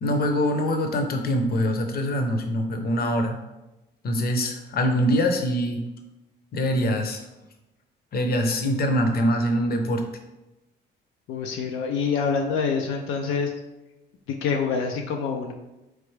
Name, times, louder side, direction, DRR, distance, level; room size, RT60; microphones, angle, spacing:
voice 1, 0.0-3.4 4.0-5.8 6.5-7.2 8.1-10.0, equal, 50° left, 4 dB, 0.7 m, -24 dB
voice 2, 11.3-13.5 14.4-15.5, left 5 dB, 90° left, 2 dB, 0.4 m, -26 dB
3.8 x 3.3 x 3.2 m, 0.98 s
cardioid pair, 90°, 20 cm